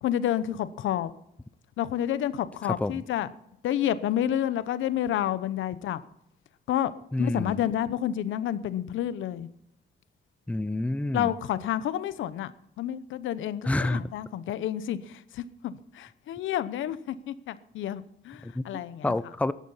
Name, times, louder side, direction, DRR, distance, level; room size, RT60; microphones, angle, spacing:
voice 1, 0.0-1.1 1.8-3.3 3.6-6.0 6.7-6.9 7.2-9.5 11.1-12.5 12.8-19.1, left 11 dB, 80° left, 14 dB, 0.9 m, -29 dB
voice 2, 2.6-3.0 7.1-7.6 10.5-11.3 13.6-14.0 18.4-19.5, left 2 dB, 5° left, 15 dB, 0.6 m, -28 dB
16.5 x 12.5 x 5.7 m, 0.80 s
cardioid pair, 90°, 20 cm